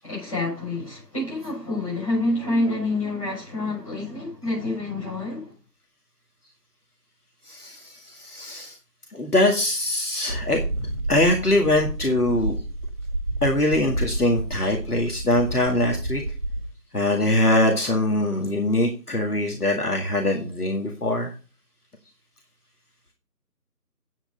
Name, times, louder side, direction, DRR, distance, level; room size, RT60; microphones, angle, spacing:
voice 1, 0.0-5.6, left 2 dB, 20° left, 6.7 m, -27 dB
voice 2, 7.5-8.8 9.1-10.6 11.1-12.6 13.4-16.2 16.9-21.3, left 1 dB, 65° left, 2.1 m, -23 dB
sound 1, 10.3-16.7, right 1 dB, 50° right, 2.6 m, -30 dB
9.1 x 8.0 x 5.1 m
figure-of-eight pair, 170°, 49 cm